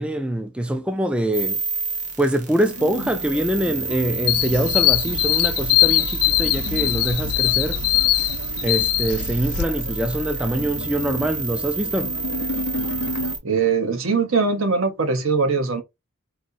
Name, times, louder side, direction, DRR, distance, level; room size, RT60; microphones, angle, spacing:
voice 1, 0.0-1.6 2.2-7.8 8.6-12.1, right 1 dB, 5° right, 0.3 m, -24 dB
sound 1, 1.3-13.4, right 4 dB, 35° right, 1.0 m, -29 dB
sound 2, 2.6-13.4, left 2 dB, 60° left, 0.7 m, -35 dB
sound 3, 4.3-9.6, left 17 dB, 90° left, 0.3 m, -21 dB
voice 2, 13.4-15.8, right 4 dB, 70° right, 0.9 m, -21 dB
4.1 x 2.6 x 2.6 m
head